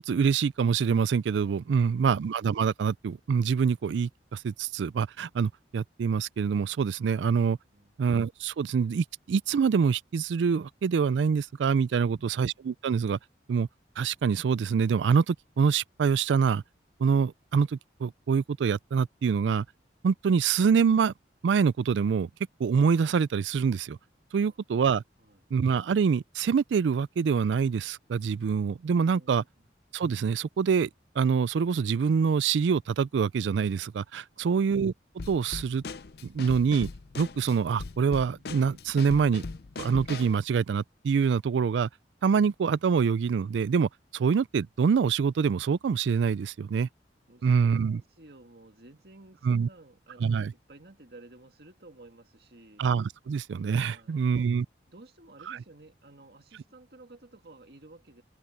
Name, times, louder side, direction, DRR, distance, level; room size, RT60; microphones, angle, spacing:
voice 1, 0.0-7.6 8.0-13.2 13.5-13.7 14.0-16.6 17.0-19.6 20.0-21.1 21.4-22.3 22.6-24.0 24.3-25.0 25.5-29.4 29.9-30.9 31.2-34.9 35.3-35.8 36.2-36.9 37.2-39.4 39.8-41.9 42.2-46.9 47.4-48.0 49.4-49.7 50.2-50.5 52.8-54.6 55.5-55.6, right 6 dB, 85° right, 0.4 m, -25 dB
voice 2, 12.0-12.5 24.5-24.6 25.2-25.4 29.1-29.7 34.3-34.7 47.3-47.5 47.9-52.9 53.9-54.5 54.9-58.2, right 2 dB, 60° right, 2.0 m, -53 dB
Drum kit / Snare drum, 35.2-40.4, left 3 dB, 60° left, 0.6 m, -40 dB
head